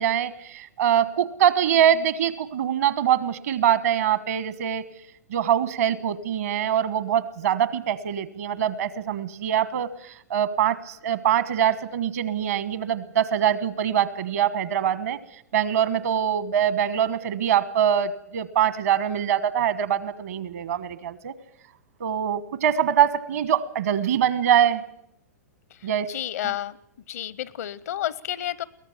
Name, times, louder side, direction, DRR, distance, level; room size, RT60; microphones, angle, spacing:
voice 1, 0.0-4.8 5.3-9.9 10.3-15.2 15.5-21.3 22.0-24.8 25.8-26.1 26.4-26.5, right 9 dB, 65° right, 15 dB, 1.3 m, -23 dB
voice 2, 26.1-26.8 27.1-28.6, left 12 dB, 65° left, 20 dB, 0.7 m, -30 dB
22.5 x 18.0 x 7.3 m, 0.74 s
figure-of-eight pair, 105°, 9 cm